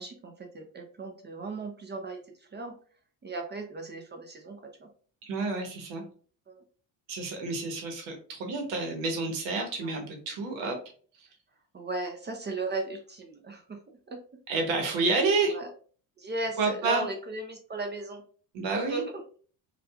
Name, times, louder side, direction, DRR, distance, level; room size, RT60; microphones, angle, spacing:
voice 1, 0.0-2.2 2.5-2.7 3.2-4.9 6.5-6.6 9.8-10.0 11.7-13.8 14.1-14.2 15.5-15.7 16.2-18.2 18.7-19.0, right 3 dB, 25° right, 3 dB, 0.5 m, -36 dB
voice 2, 5.2-6.0 7.1-10.8 11.2-11.3 14.5-15.6 16.6-17.0 18.5-19.0, right 3 dB, 85° right, 3 dB, 1.0 m, -29 dB
2.7 x 2.4 x 2.3 m, 0.43 s
cardioid pair, 90°, 44 cm